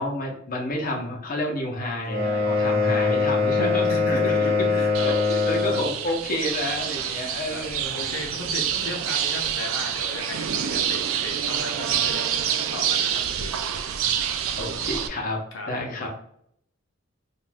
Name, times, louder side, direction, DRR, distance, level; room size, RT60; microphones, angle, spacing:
voice 1, 0.0-7.9 8.8-8.9 14.6-15.4 15.7-16.1, left 1 dB, 45° left, -1 dB, 0.7 m, -30 dB
sound 1, 2.0-5.9, left 4 dB, 55° right, 1.1 m, -22 dB
voice 2, 3.8-5.2 5.7-6.0 7.2-7.7 7.9-13.6 15.5-16.1, left 2 dB, 85° left, 1 dB, 0.5 m, -36 dB
sound 2, 4.9-15.1, right 9 dB, 80° right, 0.3 m, -27 dB
2.5 x 2.2 x 3.2 m, 0.68 s
head